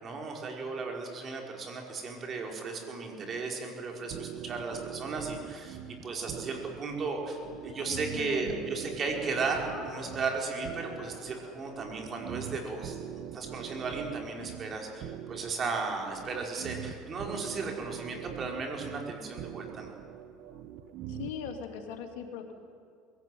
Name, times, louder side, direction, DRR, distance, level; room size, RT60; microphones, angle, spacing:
voice 1, 0.0-19.9, right 4 dB, 35° right, 1 dB, 5.1 m, -35 dB
sound 1, 4.1-21.6, right 10 dB, 60° right, 1.1 m, -43 dB
Speech, 7.2-8.7 9.4-13.4, left 5 dB, 50° left, 3.8 m, -50 dB
voice 2, 8.1-8.6 21.1-22.5, left 8 dB, 75° left, 3 dB, 2.8 m, -39 dB
21.5 x 16.5 x 9.4 m, 2.3 s
supercardioid pair, 100°, 0 cm